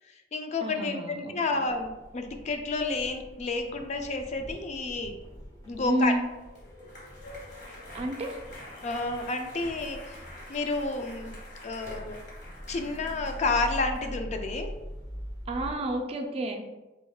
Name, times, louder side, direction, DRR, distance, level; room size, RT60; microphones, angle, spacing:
voice 1, 0.1-5.2 5.7-6.2 8.8-10.2 10.5-11.4 11.6-12.2 12.7-14.7, left 3 dB, 40° left, 5 dB, 0.3 m, -30 dB
voice 2, 0.6-1.6 5.9-6.2 7.9-8.4 15.5-16.6, right 1 dB, 35° right, 3 dB, 0.4 m, -30 dB
sound 1, 1.7-15.8, equal, 20° left, 0.9 m, -43 dB
sound 2, 6.3-14.1, left 1 dB, 70° left, 1.4 m, -47 dB
3.7 x 3.4 x 2.3 m, 1.1 s
head